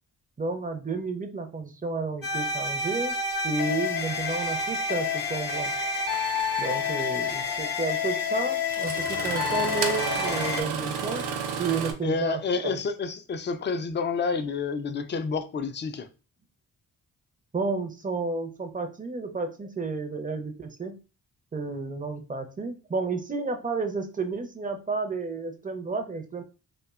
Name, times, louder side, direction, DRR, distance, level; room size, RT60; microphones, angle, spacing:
voice 1, 0.4-3.2 3.4-5.7 6.6-11.2 11.6-12.8 17.5-21.0 21.5-26.4, right 4 dB, 20° right, 0.6 m, -31 dB
sound 1, 2.2-10.6, left 5 dB, 55° left, 0.7 m, -29 dB
Engine starting, 6.4-6.5 8.1-8.2 8.7-11.9, right 6 dB, 75° right, 0.6 m, -32 dB
voice 2, 12.0-16.1, left 4 dB, 30° left, 0.4 m, -29 dB
2.5 x 2.2 x 2.4 m
supercardioid pair, 45°, 41 cm